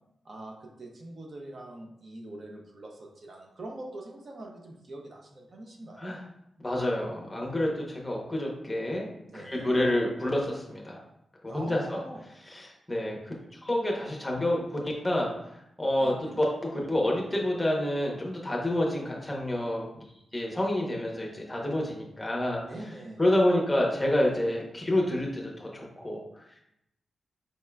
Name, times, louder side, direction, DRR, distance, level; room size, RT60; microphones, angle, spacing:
voice 1, 0.2-6.2 9.2-9.7 11.5-12.3 16.0-16.4 22.7-23.3, right 1 dB, 40° right, 1 dB, 0.6 m, -43 dB
voice 2, 6.6-11.0 11.4-12.0 12.5-13.3 13.6-14.8 15.0-15.3 15.8-19.9 20.3-22.6 23.2-26.2, left 1 dB, 10° left, -2 dB, 0.8 m, -28 dB
5.3 x 3.5 x 2.2 m, 0.81 s
wide cardioid pair, 180°, 0 cm